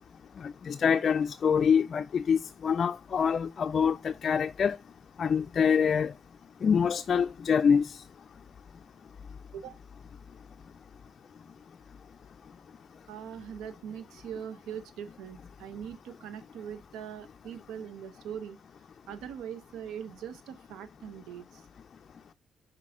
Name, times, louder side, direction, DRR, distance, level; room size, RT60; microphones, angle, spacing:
voice 1, 0.4-4.8 5.2-6.1 6.6-8.0, left 6 dB, 50° left, 0.3 m, -25 dB
voice 2, 13.1-18.6 19.1-21.6, right 8 dB, 90° right, 0.6 m, -41 dB
5.9 x 4.5 x 3.6 m
cardioid pair, 90°, 0 cm